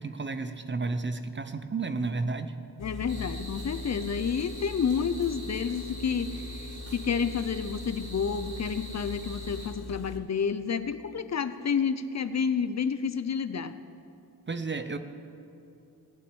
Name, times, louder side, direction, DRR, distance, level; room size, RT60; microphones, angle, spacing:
voice 1, 0.0-2.5 14.5-15.0, right 3 dB, 30° right, 10 dB, 0.5 m, -32 dB
Engine, 2.8-10.2, left 2 dB, 80° left, 1.0 m, -41 dB
voice 2, 2.8-13.7, left 6 dB, 45° left, 11 dB, 0.5 m, -30 dB
sound 1, 3.1-9.7, right 1 dB, 70° right, 3.2 m, -45 dB
17.0 x 6.1 x 9.7 m, 2.6 s
wide cardioid pair, 175°, 38 cm